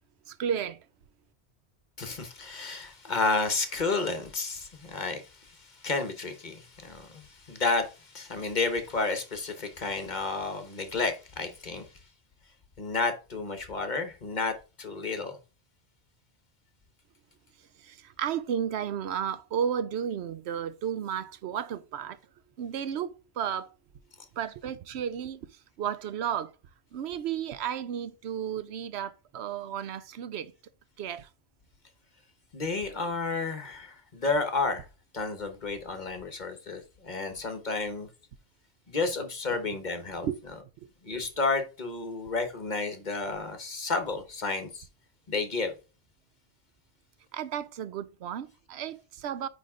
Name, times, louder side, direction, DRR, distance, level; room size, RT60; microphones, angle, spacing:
voice 1, 0.3-0.8 17.8-22.2 22.6-23.7 24.4-25.5 25.8-26.5 26.9-30.5 31.0-31.3 40.2-40.4 47.3-49.5, right 8 dB, 75° right, 0.9 m, -33 dB
voice 2, 2.0-11.9 12.8-15.4 32.5-34.9 35.1-38.1 38.9-40.3 41.0-44.9 45.3-45.7, left 3 dB, 45° left, 1.2 m, -31 dB
9.3 x 3.5 x 3.6 m
omnidirectional pair, 1.1 m